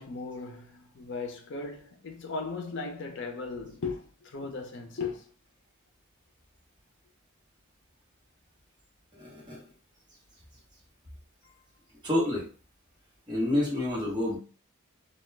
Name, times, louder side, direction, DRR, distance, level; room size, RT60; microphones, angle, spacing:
voice 1, 0.0-5.3 11.4-11.6, left 4 dB, 55° left, 0.5 m, -37 dB
voice 2, 9.1-9.6 12.0-12.5 13.3-14.4, left 1 dB, 20° right, 0.9 m, -28 dB
2.2 x 2.2 x 3.1 m
head